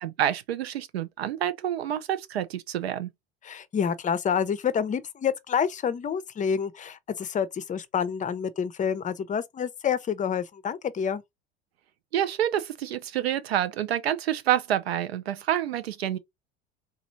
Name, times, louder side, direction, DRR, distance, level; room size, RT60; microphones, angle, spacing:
voice 1, 0.0-3.1 12.1-16.2, right 11 dB, 85° right, 0.6 m, -28 dB
voice 2, 3.4-11.2, left 7 dB, 25° left, 0.6 m, -28 dB
3.9 x 3.0 x 2.6 m
hypercardioid pair, 75°, 30 cm